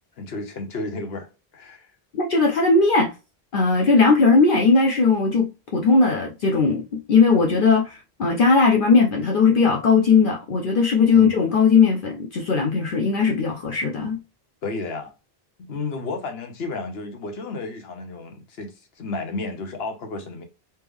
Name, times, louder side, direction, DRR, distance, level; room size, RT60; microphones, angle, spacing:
voice 1, 0.2-1.9 11.1-11.4 14.6-15.1 15.6-20.4, left 3 dB, 80° left, 1.1 m, -32 dB
voice 2, 2.1-3.1 3.5-6.8 7.1-14.2, left 4 dB, 60° left, 0.7 m, -18 dB
3.2 x 2.9 x 3.5 m
omnidirectional pair, 1.0 m